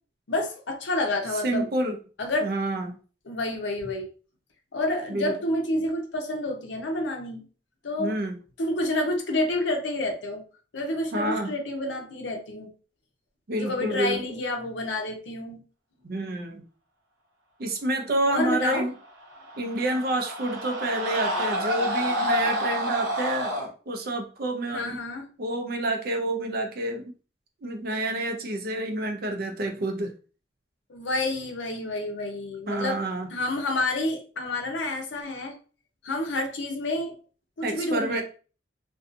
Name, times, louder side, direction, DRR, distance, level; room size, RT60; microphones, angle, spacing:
voice 1, 0.3-1.7 2.2-2.5 3.3-4.1 4.7-7.4 7.8-8.2 8.6-10.4 10.7-12.7 13.6-15.6 18.3-18.9 24.7-25.3 30.9-33.0 33.3-35.5 36.0-37.1 37.6-38.2, left 2 dB, 75° left, 3 dB, 0.6 m, -29 dB
voice 2, 1.4-2.0 2.4-3.0 5.1-5.4 8.0-8.4 11.1-11.5 13.5-14.2 16.0-16.6 17.6-18.9 19.6-23.5 23.9-25.0 25.4-27.1 27.6-30.1 32.7-33.3 37.6-38.2, right 1 dB, 50° right, 4 dB, 0.5 m, -28 dB
Screaming, 19.2-23.7, equal, 90° right, 0.8 m, -28 dB
2.6 x 2.3 x 2.5 m, 0.37 s
head